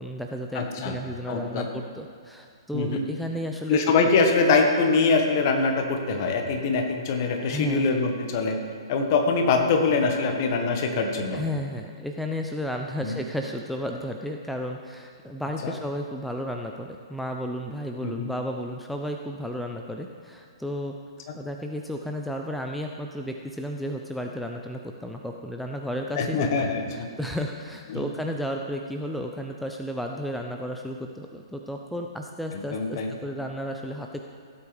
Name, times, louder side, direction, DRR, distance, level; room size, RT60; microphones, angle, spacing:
voice 1, 0.0-3.8 7.5-8.0 11.3-20.9 21.3-34.2, equal, ahead, 2 dB, 0.5 m, -33 dB
voice 2, 0.5-0.9 1.3-1.7 2.7-3.0 3.7-8.6 8.9-11.4 13.0-13.1 15.6-15.7 18.0-18.3 26.2-27.1 27.9-28.1 32.7-33.1, left 4 dB, 45° left, 3 dB, 1.5 m, -23 dB
16.5 x 8.2 x 3.5 m, 2.4 s
figure-of-eight pair, 120°, 3 cm